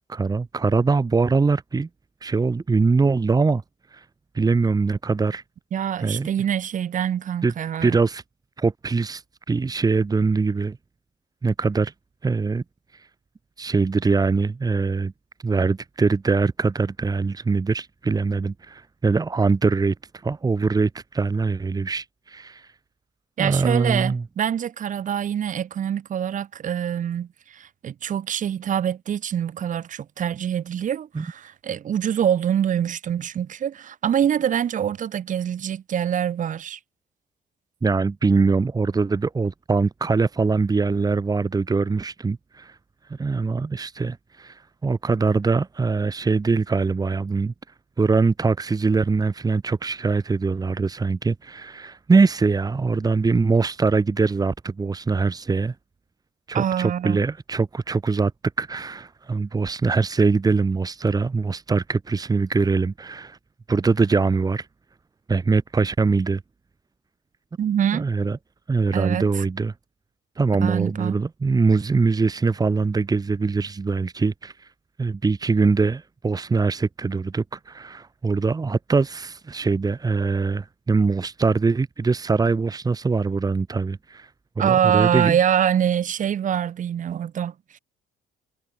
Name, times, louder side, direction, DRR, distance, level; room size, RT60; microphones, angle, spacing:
voice 1, 0.1-1.9 2.2-3.6 3.9-4.0 4.3-5.4 6.0-6.3 7.4-7.5 7.8-8.2 8.6-10.8 11.4-11.9 12.2-12.6 12.9-13.1 13.6-15.1 15.4-19.9 20.2-22.7 23.4-24.2 31.1-31.3 37.8-42.8 43.1-47.5 48.0-55.7 56.5-58.3 58.6-63.4 63.7-64.7 65.3-66.4 67.9-68.4 68.7-69.7 70.4-74.7 75.0-84.3 84.6-85.4, right 4 dB, 20° right, 2.7 m, -22 dB
voice 2, 5.7-8.0 23.4-36.8 56.5-57.2 67.6-68.1 68.9-69.4 70.6-71.2 84.6-87.8, right 9 dB, 50° right, 3.4 m, -25 dB
cardioid pair, 110°, 17 cm